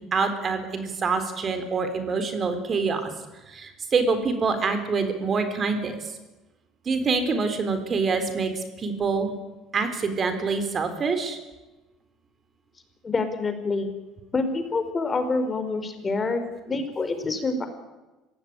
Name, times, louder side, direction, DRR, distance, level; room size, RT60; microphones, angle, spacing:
voice 1, 0.1-3.1 3.5-6.2 6.9-9.4 9.7-11.4, right 4 dB, 40° right, 9 dB, 4.0 m, -26 dB
voice 2, 13.0-13.9 14.3-17.7, left 3 dB, 30° left, 8 dB, 4.7 m, -27 dB
25.5 x 16.5 x 9.8 m, 1.1 s
hypercardioid pair, 60°, 0 cm